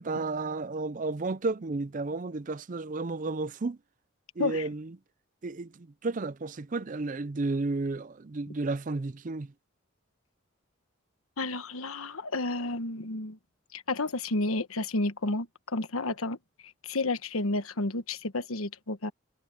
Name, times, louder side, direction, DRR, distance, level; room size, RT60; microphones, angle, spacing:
voice 1, 0.0-3.8 4.4-5.0 5.4-9.5, right 3 dB, 40° right, 0.5 m, -32 dB
voice 2, 11.4-13.4 13.7-16.4 16.6-19.1, left 2 dB, 90° left, 1.3 m, -31 dB
head